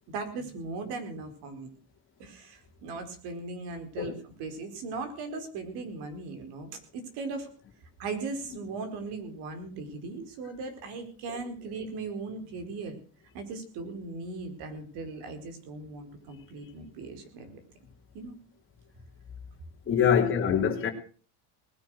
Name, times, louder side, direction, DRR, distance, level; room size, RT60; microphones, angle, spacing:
voice 1, 0.1-1.7 2.2-7.5 8.0-13.0 13.3-17.6 18.1-18.4 20.0-20.3, right 3 dB, 60° right, 4.6 m, -38 dB
voice 2, 19.9-20.9, left 8 dB, 25° left, 3.1 m, -24 dB
20.0 x 9.5 x 6.3 m
cardioid pair, 165°, 46 cm